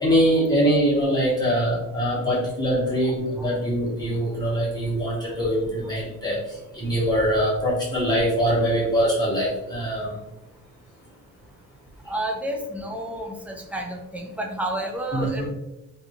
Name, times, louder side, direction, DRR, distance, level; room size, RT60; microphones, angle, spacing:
voice 1, 0.0-6.4 6.7-10.2 15.1-15.4, equal, 15° left, -8 dB, 1.2 m, -23 dB
voice 2, 12.1-15.5, right 1 dB, 5° right, 1 dB, 0.3 m, -30 dB
2.6 x 2.6 x 2.7 m, 0.98 s
cardioid pair, 140°, 31 cm